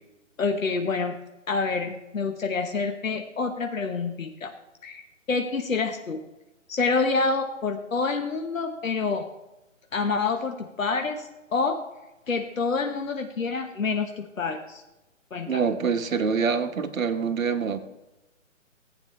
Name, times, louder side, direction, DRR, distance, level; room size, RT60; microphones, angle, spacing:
voice 1, 0.4-1.2 1.5-4.5 4.8-6.2 6.7-9.3 9.9-11.8 12.3-14.8 15.3-15.6, left 4 dB, 80° left, 6 dB, 1.3 m, -27 dB
voice 2, 15.5-17.8, right 5 dB, 85° right, 8 dB, 1.3 m, -25 dB
15.5 x 9.0 x 3.2 m, 1.0 s
hypercardioid pair, 170°, 39 cm